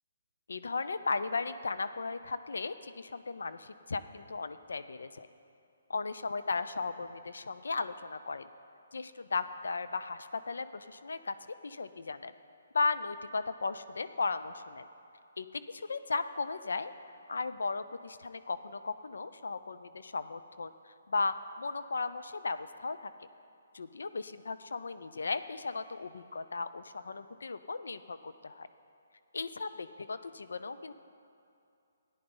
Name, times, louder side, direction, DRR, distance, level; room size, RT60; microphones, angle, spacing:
voice 1, 0.5-5.3 5.9-8.5 8.9-11.4 11.6-12.3 12.7-14.9 15.4-16.9 17.3-23.1 23.7-28.7 29.3-30.9, left 4 dB, 80° left, 12 dB, 0.4 m, -36 dB
14.0 x 9.9 x 3.9 m, 2.6 s
hypercardioid pair, 150°, 0 cm